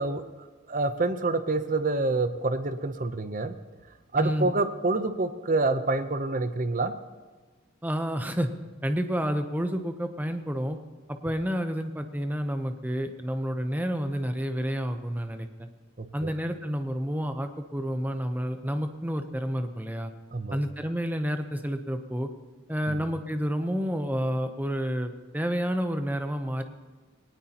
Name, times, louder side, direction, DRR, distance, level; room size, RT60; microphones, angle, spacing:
voice 1, 0.0-3.5 4.1-6.9 16.0-16.3 20.3-20.6 22.9-23.1, right 3 dB, 40° right, 10 dB, 0.7 m, -27 dB
voice 2, 4.2-4.5 7.8-8.5 8.8-10.8 11.2-15.7 16.1-20.1 20.5-22.3 22.7-26.6, equal, 10° right, 7 dB, 0.7 m, -29 dB
20.0 x 18.5 x 3.0 m, 1.3 s
head